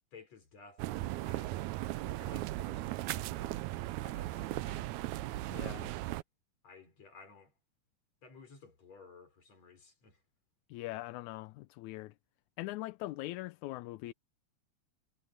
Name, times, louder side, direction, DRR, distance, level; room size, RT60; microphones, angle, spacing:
voice 1, 0.1-1.7 2.0-3.6 4.0-4.9 5.3-5.9 6.6-7.5 8.2-10.2, left 4 dB, 65° left, 6.8 m, -56 dB
sound 1, 0.8-6.2, right 17 dB, 85° right, 2.0 m, -37 dB
voice 2, 5.5-5.9 10.7-12.1 12.6-14.1, left 18 dB, 85° left, 2.1 m, -41 dB
omnidirectional pair, 3.3 m